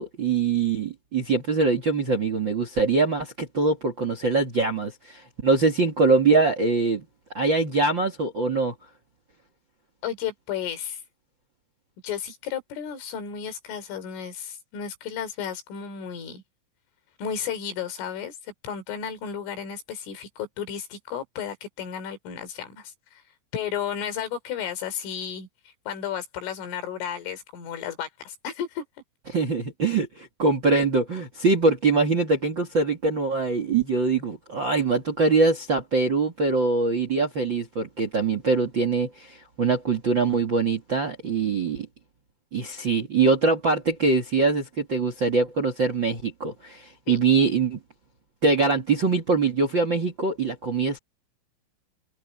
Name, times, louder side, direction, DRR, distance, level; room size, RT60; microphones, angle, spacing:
voice 1, 0.0-7.0 7.3-8.7 29.3-41.9 42.5-47.8 48.4-51.0, right 4 dB, 40° right, 1.6 m, -23 dB
voice 2, 10.0-11.0 12.0-16.4 17.2-23.2 23.5-25.5 25.9-28.8 47.1-47.2, left 8 dB, 85° left, 6.1 m, -33 dB
omnidirectional pair, 5.5 m